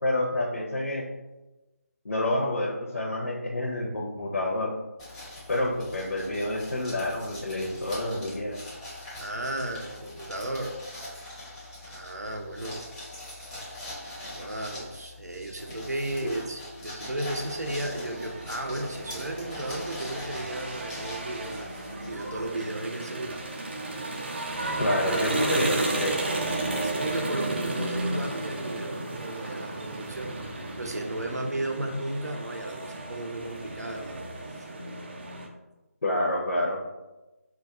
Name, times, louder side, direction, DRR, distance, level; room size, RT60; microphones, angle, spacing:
voice 1, 0.0-1.0 2.0-4.7 5.5-8.6 24.8-26.1 36.0-36.8, left 1 dB, 70° left, -3 dB, 0.5 m, -28 dB
sound 1, 5.0-22.5, left 1 dB, 10° left, 0.6 m, -42 dB
voice 2, 9.2-10.8 11.8-12.8 14.3-21.7 22.0-23.4 25.0-26.1 26.8-34.3 34.5-34.7, right 1 dB, 90° right, 3 dB, 0.6 m, -34 dB
sound 2, 17.1-35.5, right 2 dB, 40° right, 0.4 m, -34 dB
2.4 x 2.2 x 3.5 m, 1.1 s
figure-of-eight pair, 160°, 9 cm